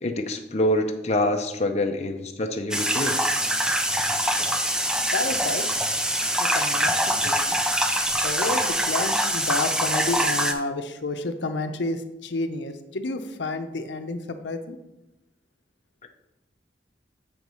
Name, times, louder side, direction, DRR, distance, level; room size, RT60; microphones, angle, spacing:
voice 1, 0.0-3.2 4.4-4.5, left 1 dB, 35° left, 4 dB, 0.6 m, -26 dB
sound 1, 2.7-10.5, right 1 dB, 5° right, 0.4 m, -24 dB
voice 2, 5.1-5.9 6.4-7.5 8.2-14.8, left 2 dB, 80° left, 8 dB, 0.7 m, -30 dB
7.7 x 4.7 x 5.4 m, 0.94 s
head